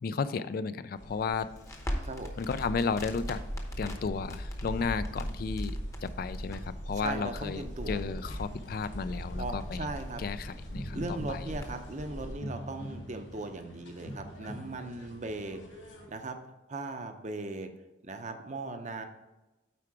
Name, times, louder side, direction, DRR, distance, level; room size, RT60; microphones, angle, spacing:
voice 1, 0.0-1.5 2.4-3.5 3.8-9.9 10.2-11.5, left 5 dB, 50° left, 13 dB, 0.3 m, -33 dB
sound 1, 1.0-12.3, equal, 70° left, 2.5 m, -40 dB
Crackle, 1.5-12.0, equal, 15° left, 0.8 m, -44 dB
voice 2, 7.0-8.0 9.4-10.2 10.9-15.6 16.1-16.4 16.7-17.7 18.0-19.0, right 2 dB, 40° right, 7 dB, 0.7 m, -38 dB
sound 2, 8.4-16.1, equal, 90° left, 1.7 m, -45 dB
8.5 x 4.7 x 4.7 m, 1.0 s
head